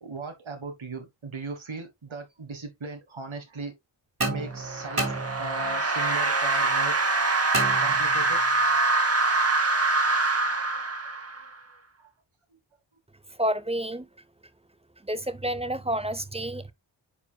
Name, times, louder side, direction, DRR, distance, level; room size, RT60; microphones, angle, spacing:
voice 1, 0.0-3.7 4.2-5.1 5.4-7.0 7.6-9.0 10.4-11.1 12.0-12.1 12.5-12.6, right 3 dB, 75° right, 1.5 m, -38 dB
sound 1, 4.2-5.8 7.5-8.5, right 2 dB, 50° right, 2.6 m, -31 dB
sound 2, 4.5-11.5, right 3 dB, 30° right, 1.1 m, -24 dB
voice 2, 13.4-14.1 15.0-16.7, right 1 dB, 15° right, 0.7 m, -29 dB
9.5 x 4.7 x 2.2 m
wide cardioid pair, 70°, 47 cm